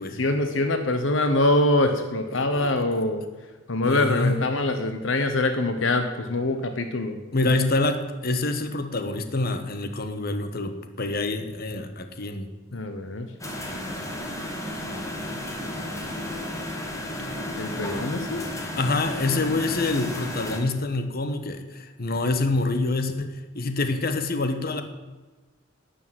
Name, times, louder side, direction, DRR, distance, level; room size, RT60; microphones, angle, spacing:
voice 1, 0.1-3.2 3.7-7.2 12.7-13.3 17.6-18.4, left 2 dB, 65° left, 7 dB, 1.0 m, -24 dB
voice 2, 2.3-2.8 3.8-4.4 7.3-12.9 18.8-24.8, left 2 dB, 50° left, 8 dB, 1.2 m, -26 dB
sound 1, 13.4-20.6, left 1 dB, 15° left, 2.1 m, -33 dB
12.0 x 6.9 x 9.3 m, 1.2 s
head